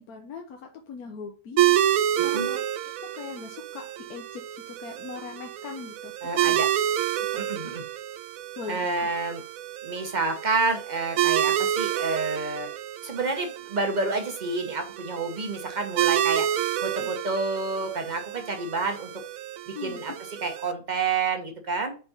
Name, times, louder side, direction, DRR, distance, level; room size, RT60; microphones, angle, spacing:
voice 1, 0.0-1.9 2.2-6.6 7.3-7.7 8.6-8.8 17.0-17.1 19.7-20.0, left 5 dB, 70° left, 3 dB, 1.3 m, -40 dB
sound 1, 1.6-20.7, right 12 dB, 70° right, 0.9 m, -29 dB
voice 2, 6.2-6.7 7.4-7.8 8.7-9.4 9.8-12.7 13.0-16.5 16.8-19.1 19.7-20.1 20.4-22.0, right 3 dB, 30° right, 5 dB, 1.1 m, -29 dB
5.4 x 4.2 x 5.5 m, 0.38 s
omnidirectional pair, 1.7 m